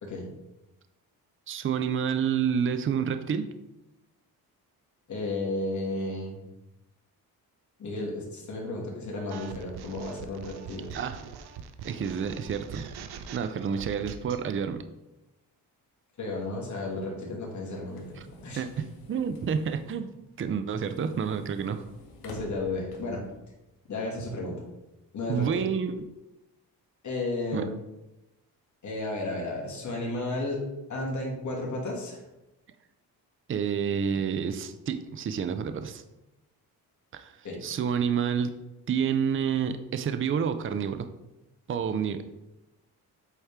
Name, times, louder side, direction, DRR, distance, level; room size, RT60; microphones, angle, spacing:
voice 1, 1.5-3.5 10.9-11.2 11.8-12.9 13.3-14.9 18.6-20.1 20.4-21.8 25.3-26.1 27.5-27.7 33.5-36.0 37.1-37.4 37.6-38.5 38.9-41.1 41.7-42.3, right 7 dB, 35° right, 9 dB, 0.5 m, -29 dB
voice 2, 5.1-6.4 7.8-10.9 16.2-18.6 22.2-23.2 23.9-24.5 25.1-25.6 27.0-27.7 28.8-30.6 30.9-32.2 37.4-37.6, left 2 dB, 50° left, -2 dB, 2.4 m, -33 dB
sound 1, 9.3-14.4, right 7 dB, 85° right, 0.7 m, -42 dB
sound 2, 16.8-23.4, left 2 dB, 70° left, 1.5 m, -51 dB
8.1 x 4.3 x 3.6 m, 0.96 s
cardioid pair, 105°, 38 cm